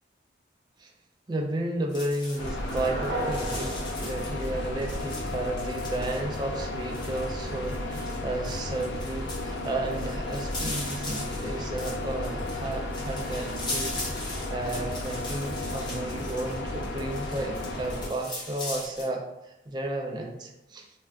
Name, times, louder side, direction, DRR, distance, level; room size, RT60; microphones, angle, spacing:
voice 1, 1.3-20.9, right 1 dB, 25° right, 2 dB, 0.3 m, -33 dB
sound 1, 1.9-19.0, left 2 dB, 25° left, 0.8 m, -40 dB
sound 2, 2.2-5.3, right 1 dB, 60° right, 0.7 m, -36 dB
sound 3, 2.4-18.1, left 2 dB, 75° left, 0.4 m, -34 dB
2.4 x 2.1 x 3.3 m, 0.90 s
head